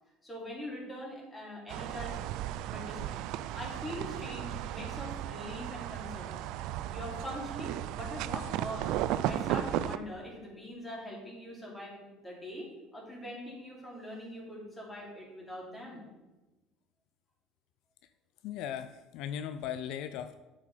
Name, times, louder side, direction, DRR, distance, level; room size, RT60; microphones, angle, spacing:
voice 1, 0.2-2.2 2.7-3.2 3.5-6.4 6.9-8.9 9.2-16.1, left 1 dB, 10° left, -3 dB, 3.2 m, -42 dB
sound 1, 1.7-10.0, right 12 dB, 70° right, 0.3 m, -35 dB
voice 2, 18.4-20.3, left 9 dB, 70° left, 11 dB, 0.4 m, -38 dB
8.1 x 5.1 x 5.6 m, 1.1 s
supercardioid pair, 95°, 0 cm